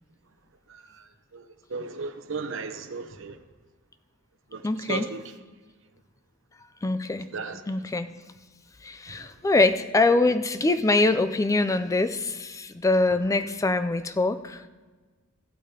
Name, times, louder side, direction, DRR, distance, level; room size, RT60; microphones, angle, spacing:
voice 1, 1.7-3.4 4.5-4.6 4.9-5.2 7.3-7.6, right 4 dB, 65° right, 9 dB, 0.8 m, -34 dB
voice 2, 4.6-5.1 6.8-7.3 7.7-8.1 8.8-14.7, left 2 dB, 15° left, 11 dB, 0.3 m, -24 dB
15.0 x 8.4 x 2.8 m, 1.3 s
head